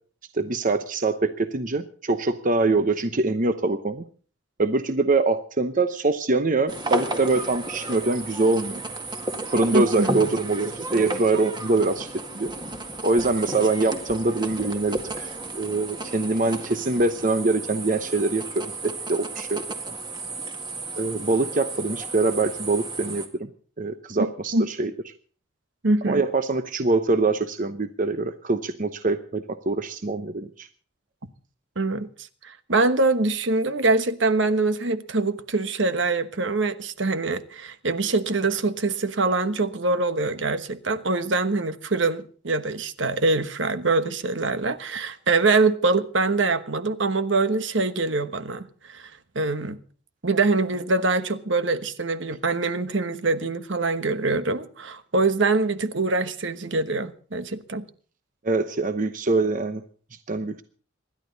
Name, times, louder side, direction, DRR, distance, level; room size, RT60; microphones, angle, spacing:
voice 1, 0.3-4.0 4.6-8.8 9.5-12.5 13.0-15.3 15.5-18.4 18.8-20.0 21.0-23.5 23.8-24.9 26.0-30.7 58.4-59.8 60.3-60.6, right 3 dB, 40° right, 0.8 m, -24 dB
sound 1, 6.7-23.3, right 2 dB, 25° right, 1.9 m, -33 dB
voice 2, 9.7-10.1 24.2-24.3 24.5-24.6 25.8-26.2 31.8-32.1 32.4-49.1 49.3-49.8 50.2-57.8, right 3 dB, 65° right, 1.2 m, -24 dB
26.5 x 11.5 x 4.0 m
head